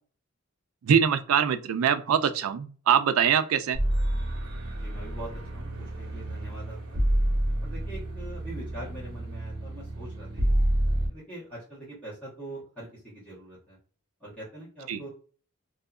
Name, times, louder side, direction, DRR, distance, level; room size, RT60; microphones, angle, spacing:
voice 1, 0.8-3.8 14.9-15.0, right 8 dB, 85° right, 0.4 m, -23 dB
sound 1, 3.7-11.1, right 1 dB, 60° right, 1.1 m, -29 dB
voice 2, 4.7-7.0 7.6-10.5 11.1-13.8 14.2-15.1, right 1 dB, 5° left, 1.1 m, -43 dB
2.7 x 2.4 x 2.3 m
head